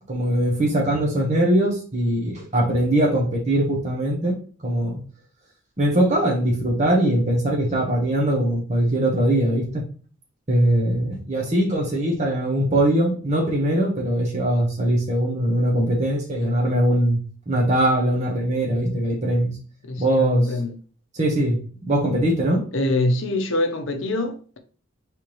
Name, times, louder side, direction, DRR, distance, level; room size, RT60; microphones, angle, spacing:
voice 1, 0.1-4.4 4.6-5.0 5.8-9.8 10.5-17.2 17.5-19.5 20.0-20.5 21.1-21.6 21.8-22.6, right 1 dB, 35° right, 1.1 m, -21 dB
voice 2, 19.8-20.7 22.7-24.6, left 1 dB, 65° left, 0.7 m, -25 dB
4.5 x 3.5 x 3.0 m
head